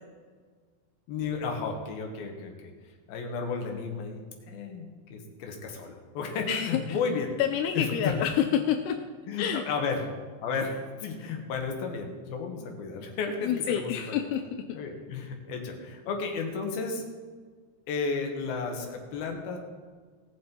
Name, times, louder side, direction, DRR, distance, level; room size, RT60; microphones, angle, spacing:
voice 1, 1.1-2.7 3.1-4.8 5.1-7.3 7.7-8.2 9.3-10.0 10.4-14.2 14.7-17.0 17.9-19.6, left 5 dB, 65° left, 2 dB, 2.9 m, -33 dB
voice 2, 6.5-7.0 7.4-9.0 9.4-9.7 13.4-14.4, left 9 dB, 90° left, 6 dB, 2.4 m, -27 dB
19.0 x 7.2 x 4.5 m, 1.5 s
omnidirectional pair, 5.3 m